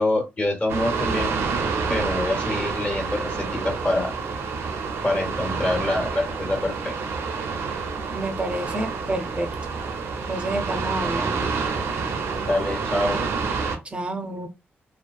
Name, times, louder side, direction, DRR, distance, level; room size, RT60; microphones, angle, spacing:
voice 1, 0.0-1.4 1.9-4.1 5.0-6.9 12.5-13.2, left 1 dB, 30° left, 1.3 m, -25 dB
sound 1, 0.7-13.8, right 5 dB, 80° right, 0.5 m, -28 dB
voice 2, 8.1-9.5 10.3-11.5 13.8-14.5, right 1 dB, 25° right, 0.5 m, -29 dB
2.6 x 2.2 x 2.3 m
cardioid pair, 70°, 4 cm